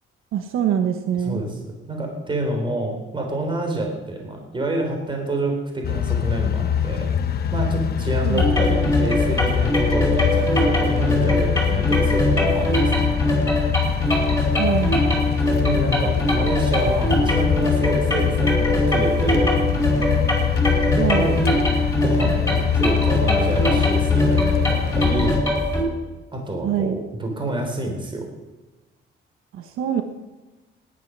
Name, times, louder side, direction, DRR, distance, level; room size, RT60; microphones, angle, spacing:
voice 1, 0.3-1.4 8.2-8.4 14.6-15.0 20.9-21.4 26.6-27.0 29.5-30.0, right 9 dB, 80° right, 7 dB, 1.3 m, -24 dB
voice 2, 1.9-7.1 7.5-13.1 15.6-19.5 20.8-21.4 22.0-25.4 26.3-28.2, right 1 dB, 25° right, 2 dB, 3.5 m, -28 dB
sound 1, 5.8-25.4, left 9 dB, 50° left, 1.1 m, -23 dB
sound 2, 8.4-25.8, left 1 dB, 10° left, 5.2 m, -22 dB
17.5 x 11.0 x 6.1 m, 1.1 s
cardioid pair, 135°, 21 cm